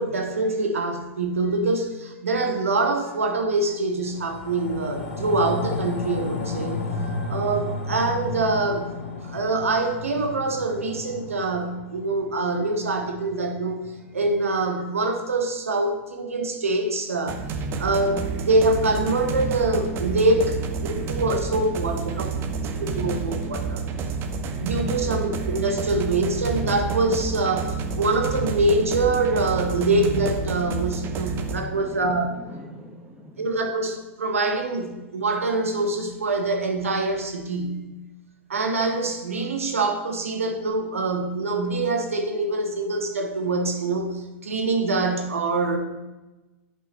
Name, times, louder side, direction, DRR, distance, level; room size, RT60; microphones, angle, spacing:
voice 1, 0.0-8.9 9.3-13.8 14.1-17.4 17.8-22.3 22.8-23.8 24.6-32.3 33.4-37.8 38.5-44.2 44.4-45.8, right 2 dB, 85° right, 4 dB, 1.2 m, -24 dB
sound 1, 4.0-14.6 15.0-15.1, left 3 dB, 60° left, 1.5 m, -33 dB
sound 2, 17.3-31.6, right 4 dB, 30° right, 0.8 m, -29 dB
voice 2, 21.5-23.4 31.6-33.5, right 1 dB, 15° right, 1 dB, 1.1 m, -45 dB
9.7 x 5.7 x 3.2 m, 1.1 s
hypercardioid pair, 110°, 7 cm